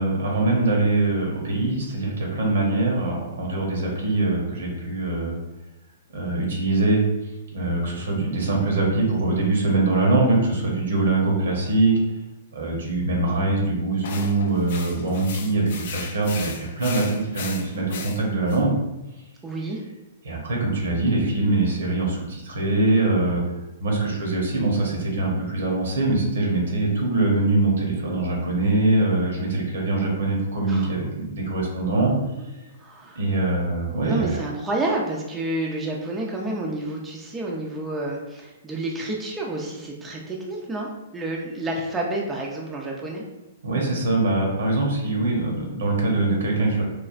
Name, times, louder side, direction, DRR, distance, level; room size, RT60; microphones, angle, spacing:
voice 1, 0.0-5.4 6.1-7.0 7.5-11.9 12.5-18.7 20.2-23.4 23.8-32.1 33.2-34.4 43.6-46.8, right 2 dB, 80° right, -1 dB, 0.8 m, -23 dB
sound 1, 14.0-18.6, left 5 dB, 60° left, 0.4 m, -37 dB
voice 2, 19.4-19.8 30.7-30.9 32.4-32.5 32.8-33.2 34.0-43.2, right 2 dB, 15° right, -2 dB, 0.4 m, -29 dB
3.1 x 2.3 x 2.4 m, 1.0 s
hypercardioid pair, 130°, 0 cm